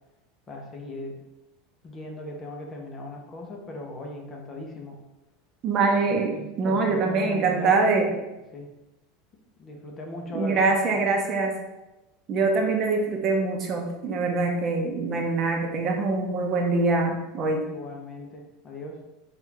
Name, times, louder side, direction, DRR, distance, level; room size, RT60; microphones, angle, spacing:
voice 1, 0.5-1.2 1.8-5.0 6.3-8.1 8.5-8.7 9.6-10.7 17.7-19.0, left 2 dB, 25° left, 1 dB, 0.7 m, -38 dB
voice 2, 5.6-8.1 10.3-11.6 12.3-17.7, right 3 dB, 35° right, 2 dB, 0.7 m, -24 dB
4.1 x 2.4 x 3.8 m, 1.0 s
supercardioid pair, 130°, 0 cm